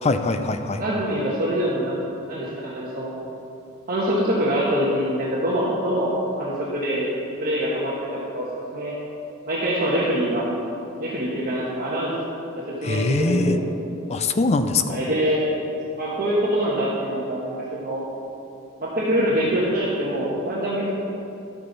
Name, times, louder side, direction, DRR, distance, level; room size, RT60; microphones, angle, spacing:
voice 1, 0.0-0.8 12.8-13.6 14.1-15.0, left 3 dB, 30° left, 9 dB, 0.4 m, -22 dB
voice 2, 0.8-2.0 2.3-3.2 3.9-7.1 7.4-9.0 9.4-10.5 11.0-12.4 12.8-13.6 14.9-15.5 16.0-18.0 18.8-20.9, equal, 40° right, -6 dB, 1.2 m, -24 dB
11.5 x 8.7 x 4.0 m, 2.7 s
head